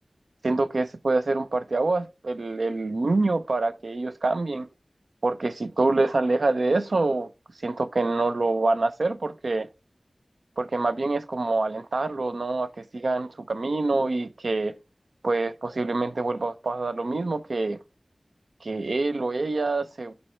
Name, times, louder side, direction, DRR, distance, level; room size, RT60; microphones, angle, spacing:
voice 1, 0.4-4.7 5.2-7.3 7.6-9.7 10.6-14.7 15.2-17.8 18.6-20.1, right 3 dB, 85° right, 0.7 m, -26 dB
7.8 x 4.2 x 4.4 m
wide cardioid pair, 60°, 0 cm